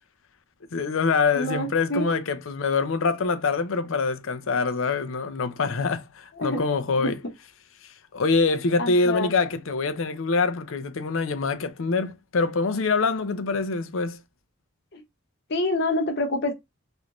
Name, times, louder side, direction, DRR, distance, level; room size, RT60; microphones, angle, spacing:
voice 1, 0.7-7.2 8.1-14.2, left 4 dB, 70° left, 0.5 m, -25 dB
voice 2, 1.3-2.2 6.4-6.6 7.0-7.1 8.8-9.3 14.9-15.0 15.5-16.5, left 2 dB, 50° left, 0.9 m, -27 dB
3.2 x 2.6 x 2.9 m
head